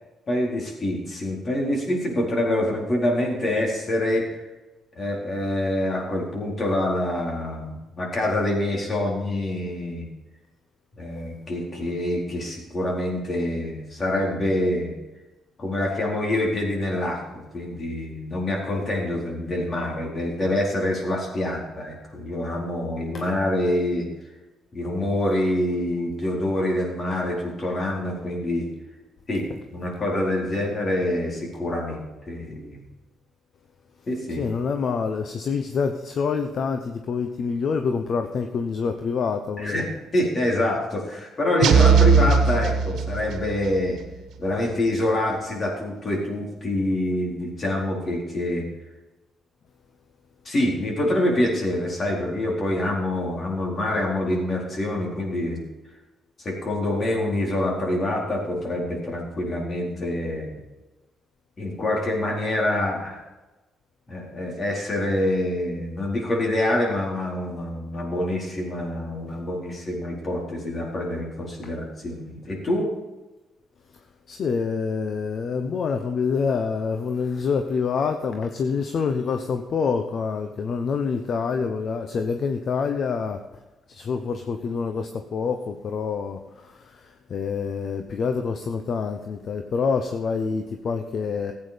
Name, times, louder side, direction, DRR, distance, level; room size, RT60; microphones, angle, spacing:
voice 1, 0.3-4.3 5.0-10.1 11.0-14.9 15.6-24.1 24.7-28.7 29.3-32.8 34.1-34.4 39.6-39.9 40.1-44.0 44.4-48.7 50.4-55.6 56.4-60.5 61.6-63.2 64.1-72.9, left 1 dB, 40° left, -1 dB, 4.3 m, -26 dB
voice 2, 34.4-39.9 69.3-69.4 71.6-71.7 74.3-83.4 83.9-91.5, left 5 dB, 55° left, 6 dB, 1.0 m, -26 dB
sound 1, 41.6-43.5, right 6 dB, 75° right, 1.4 m, -18 dB
15.0 x 8.8 x 5.2 m, 1.1 s
cardioid pair, 90°, 0 cm